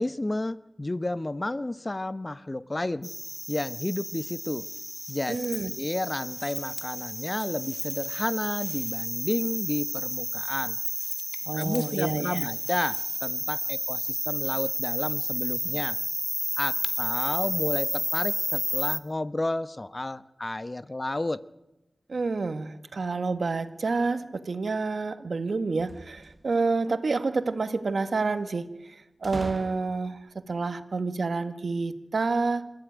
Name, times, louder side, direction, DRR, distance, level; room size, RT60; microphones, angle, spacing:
voice 1, 0.0-3.1 3.5-4.7 5.1-5.4 5.8-10.8 11.5-16.0 16.6-21.4, left 2 dB, 35° left, 14 dB, 0.9 m, -31 dB
sound 1, 3.0-19.0, left 1 dB, 15° left, 1.7 m, -31 dB
voice 2, 5.3-5.7 11.4-12.5 22.1-32.7, right 3 dB, 75° right, 10 dB, 1.6 m, -29 dB
sound 2, 25.8-26.8 29.2-30.3, right 2 dB, 45° right, 1.3 m, -41 dB
26.5 x 14.5 x 9.2 m, 0.95 s
wide cardioid pair, 55°, 0 cm